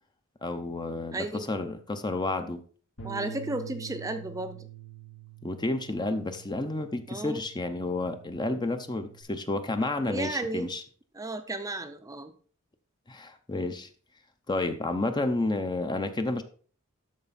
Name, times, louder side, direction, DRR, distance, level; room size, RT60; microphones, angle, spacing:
voice 1, 0.4-2.6 5.4-10.8 13.1-13.9 14.5-16.4, left 2 dB, 20° left, 8 dB, 0.7 m, -31 dB
voice 2, 1.1-1.5 3.0-4.7 7.1-7.4 10.0-10.7 11.1-12.3, right 2 dB, 15° right, 8 dB, 0.6 m, -34 dB
Bass guitar, 3.0-9.2, right 7 dB, 90° left, 3.2 m, -46 dB
12.5 x 4.4 x 4.1 m, 0.42 s
head